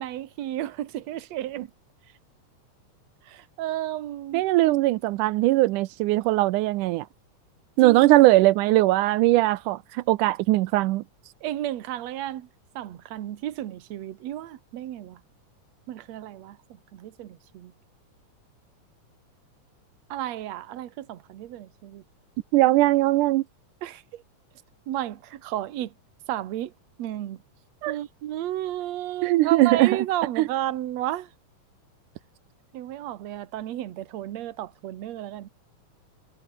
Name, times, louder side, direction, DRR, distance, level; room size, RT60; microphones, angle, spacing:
voice 1, 0.0-1.7 3.2-4.4 7.8-8.0 11.4-12.5 12.8-15.2 15.9-17.7 20.1-22.0 23.8-24.2 24.9-25.9 26.3-26.7 27.0-27.4 27.9-31.3 32.7-35.5, right 13 dB, 60° right, 2.3 m, -33 dB
voice 2, 4.3-7.1 7.8-11.0 22.5-23.4 27.8-28.0 29.2-30.0 30.4-30.5, right 18 dB, 85° right, 2.2 m, -20 dB
omnidirectional pair, 3.6 m